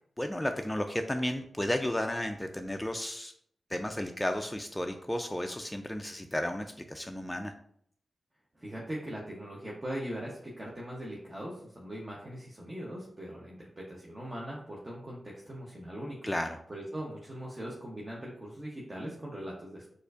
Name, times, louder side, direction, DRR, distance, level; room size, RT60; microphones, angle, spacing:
voice 1, 0.2-3.3 3.7-7.5 16.2-16.6, left 1 dB, 10° left, 5 dB, 0.3 m, -33 dB
voice 2, 8.6-16.2 16.7-19.9, equal, 30° right, -4 dB, 0.7 m, -40 dB
4.2 x 2.5 x 2.4 m, 0.67 s
supercardioid pair, 40°, 0 cm